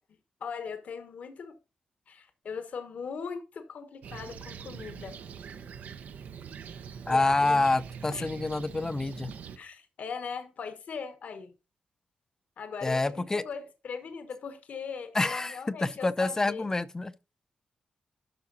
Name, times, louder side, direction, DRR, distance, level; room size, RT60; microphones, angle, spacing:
voice 1, 0.4-1.6 2.1-5.2 7.1-7.6 8.1-8.3 9.6-11.5 12.6-16.7, left 6 dB, 65° left, 1.3 m, -39 dB
Fixed-wing aircraft airplane, 4.0-9.6, right 7 dB, 80° right, 0.9 m, -43 dB
voice 2, 7.1-9.3 12.8-13.4 15.1-17.1, left 2 dB, 20° left, 0.6 m, -27 dB
12.0 x 5.8 x 4.0 m
wide cardioid pair, 130°, 3 cm